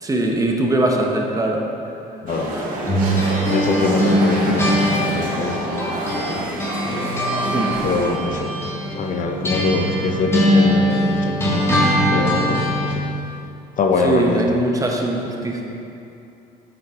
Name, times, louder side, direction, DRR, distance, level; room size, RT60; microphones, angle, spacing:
voice 1, 0.0-1.6 2.5-2.6 7.5-7.7 14.0-15.6, right 1 dB, 20° right, 0 dB, 1.1 m, -21 dB
sound 1, 2.3-8.2, right 1 dB, 55° right, 2.2 m, -27 dB
sound 2, 2.9-6.3 6.6-13.0, equal, 15° left, 1.8 m, -21 dB
voice 2, 3.5-5.7 6.1-6.5 7.8-8.5 8.9-11.7 12.1-13.1 13.8-14.6, left 4 dB, 50° left, 3 dB, 0.9 m, -23 dB
7.7 x 7.6 x 4.9 m, 2.8 s
cardioid pair, 110°, 17 cm